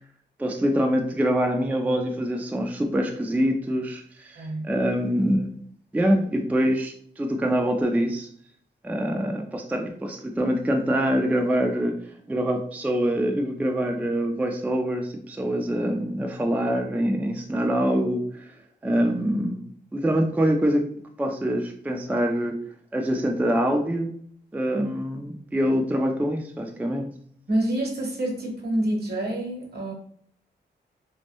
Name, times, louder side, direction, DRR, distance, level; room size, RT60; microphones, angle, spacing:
voice 1, 0.4-5.5 5.9-8.3 8.8-18.6 18.8-19.6 19.9-20.9 21.2-22.6 22.9-24.1 24.5-27.1, equal, 10° right, 3 dB, 0.3 m, -25 dB
voice 2, 4.4-4.7 27.5-29.9, right 1 dB, 55° right, 0 dB, 0.8 m, -27 dB
2.1 x 2.0 x 2.9 m, 0.62 s
cardioid pair, 55°, 19 cm